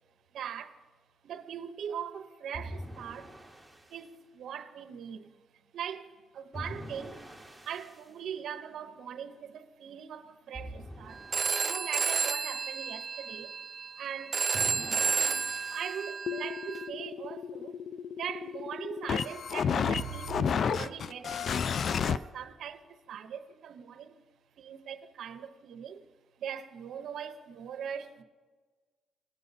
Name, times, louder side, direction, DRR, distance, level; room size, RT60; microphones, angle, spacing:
voice 1, 0.3-0.8 1.2-3.3 3.9-5.4 5.7-7.2 7.6-11.2 11.6-13.5 14.0-14.5 15.2-17.8 18.2-24.1 24.6-26.1 26.4-28.2, right 8 dB, 70° right, 0.7 m, -41 dB
sound 1, 2.5-4.0 6.5-8.0 10.5-11.9 14.5-16.1, equal, 5° right, 1.1 m, -44 dB
Telephone, 11.3-16.9, right 5 dB, 40° right, 0.4 m, -31 dB
sound 2, 16.3-22.2, left 7 dB, 55° left, 0.3 m, -32 dB
19.0 x 6.6 x 4.1 m
cardioid pair, 90°, 0 cm